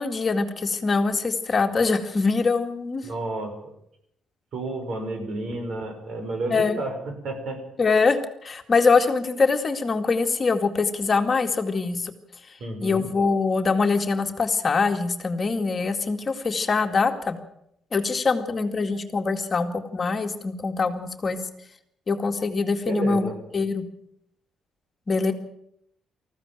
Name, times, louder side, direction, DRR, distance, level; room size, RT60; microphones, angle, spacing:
voice 1, 0.0-3.0 6.5-6.8 7.8-12.1 12.8-17.4 17.9-21.4 22.1-23.3 23.5-23.8 25.1-25.3, left 4 dB, 35° left, 6 dB, 2.1 m, -23 dB
voice 2, 3.0-3.7 4.5-7.6 12.6-13.1 22.9-23.4, right 2 dB, 65° right, 6 dB, 6.1 m, -31 dB
19.5 x 15.0 x 9.0 m, 0.75 s
cardioid pair, 90°, 0 cm